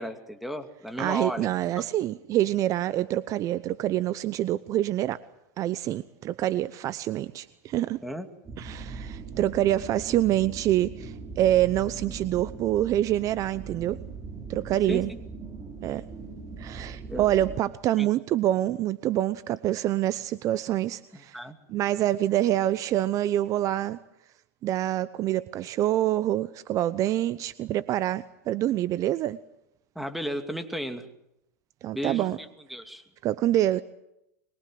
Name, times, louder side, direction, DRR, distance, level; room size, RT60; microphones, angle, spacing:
voice 1, 0.0-1.5 1.8-1.9 8.0-8.3 14.9-15.0 17.0-17.3 18.0-18.1 21.1-21.6 29.9-31.1 31.9-33.0, equal, ahead, 7 dB, 2.7 m, -34 dB
voice 2, 1.0-5.2 5.6-8.0 8.6-14.0 14.5-15.1 15.8-16.0 16.6-21.4 21.7-24.0 24.6-29.4 31.8-32.4 33.2-33.8, right 13 dB, 40° right, 15 dB, 0.8 m, -26 dB
sound 1, 8.4-17.6, right 4 dB, 20° right, 5.2 m, -40 dB
24.5 x 22.5 x 7.8 m, 0.84 s
hypercardioid pair, 110°, 8 cm